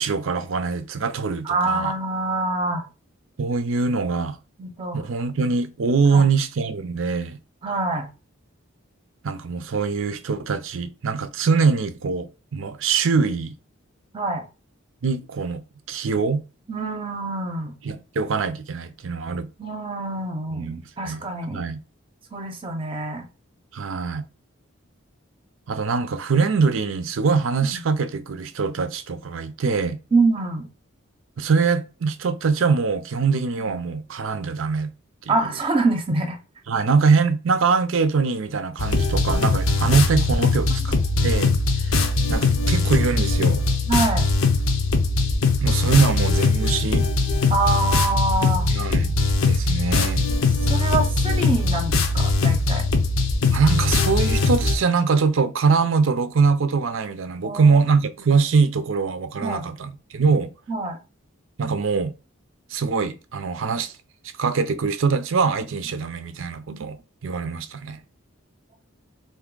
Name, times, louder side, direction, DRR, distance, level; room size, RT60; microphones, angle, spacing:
voice 1, 0.0-1.9 3.4-4.4 4.9-7.4 9.2-13.5 15.0-15.6 15.9-16.4 17.8-19.5 20.5-21.2 21.5-21.8 23.7-24.3 25.7-30.0 31.4-34.9 35.3-35.4 36.7-43.6 45.6-47.1 48.7-49.2 49.4-50.2 53.5-60.5 61.6-62.1 62.7-63.9 64.4-67.0 67.2-68.0, right 5 dB, 70° right, 0.5 m, -23 dB
voice 2, 1.4-2.8 4.6-5.0 6.1-6.3 7.6-8.1 14.1-14.5 16.7-17.8 19.6-21.6 22.3-23.2 27.6-27.8 30.1-30.7 33.6-33.7 35.3-36.4 43.9-44.3 47.5-48.7 50.7-52.8 57.4-57.8 59.4-59.7 60.7-61.0 66.7-66.9, right 3 dB, 25° right, 0.6 m, -25 dB
sound 1, 38.8-54.8, left 3 dB, 75° left, 0.6 m, -21 dB
3.4 x 2.6 x 3.8 m
head